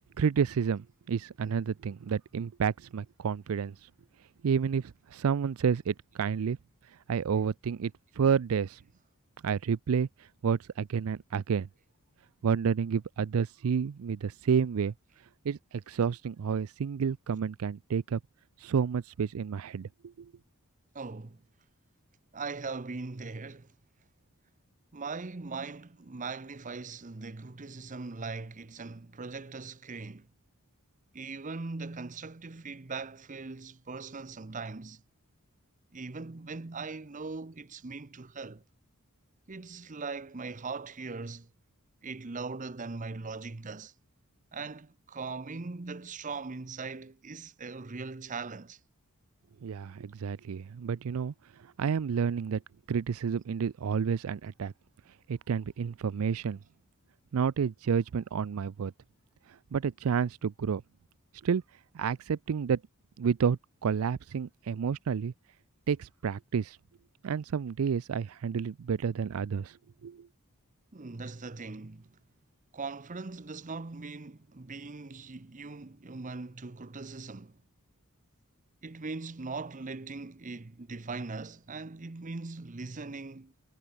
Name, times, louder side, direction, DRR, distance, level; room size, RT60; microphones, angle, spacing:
voice 1, 0.2-3.9 4.4-6.6 6.8-8.8 9.4-11.7 12.4-14.9 15.4-18.2 18.6-19.9 20.2-20.3 49.6-51.3 51.6-52.6 52.9-54.7 55.3-56.6 57.3-58.9 59.5-60.8 61.4-61.6 61.9-62.8 63.2-65.3 65.9-66.8 67.2-69.8 70.0-70.3, right 6 dB, 70° right, 0.4 m, -30 dB
voice 2, 20.9-21.4 22.3-23.7 24.9-30.3 31.1-35.0 35.9-38.6 39.5-41.5 42.0-43.9 44.5-48.8 70.9-72.1 72.7-77.6 78.8-83.5, right 4 dB, 35° right, 0.8 m, -40 dB
head